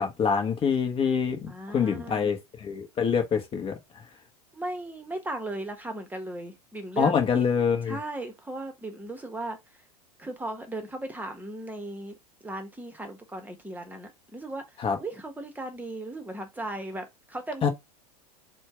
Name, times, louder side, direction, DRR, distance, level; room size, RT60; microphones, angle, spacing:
voice 1, 0.0-3.7 7.0-8.0 14.8-15.0 17.6-17.7, left 6 dB, 25° left, 1.0 m, -25 dB
voice 2, 1.5-2.3 4.5-7.5 7.9-9.6 10.2-12.2 12.4-17.7, right 2 dB, 10° right, 1.1 m, -37 dB
4.4 x 2.3 x 4.7 m
hypercardioid pair, 100°, 20 cm